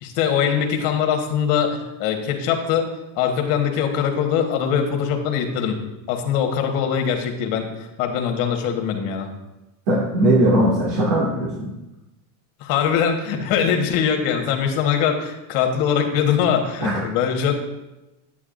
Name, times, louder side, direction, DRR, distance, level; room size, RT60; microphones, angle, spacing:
voice 1, 0.0-2.9 3.1-5.8 6.1-7.7 8.0-9.3 12.6-17.5, left 8 dB, 70° left, 4 dB, 1.5 m, -22 dB
voice 2, 9.9-11.7 16.8-17.0, right 1 dB, 65° right, -7 dB, 2.3 m, -19 dB
9.2 x 8.7 x 2.6 m, 0.99 s
supercardioid pair, 115°, 47 cm